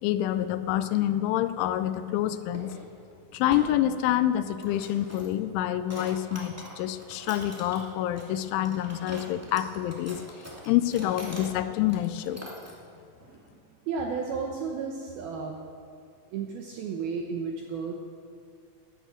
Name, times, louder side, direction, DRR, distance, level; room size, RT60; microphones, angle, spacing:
voice 1, 0.0-2.7 3.3-12.4, left 12 dB, 85° left, 12 dB, 3.0 m, -27 dB
sound 1, 1.6-1.9 2.5-2.8 3.1-3.2 3.5-3.7 4.4-5.4 5.8-7.8 8.1-11.5 11.8-12.7, equal, 10° right, 0.8 m, -44 dB
voice 2, 13.2-13.6 13.9-15.6 16.3-18.0, right 5 dB, 80° right, 2 dB, 2.2 m, -33 dB
13.0 x 11.0 x 8.9 m, 2.3 s
omnidirectional pair, 5.6 m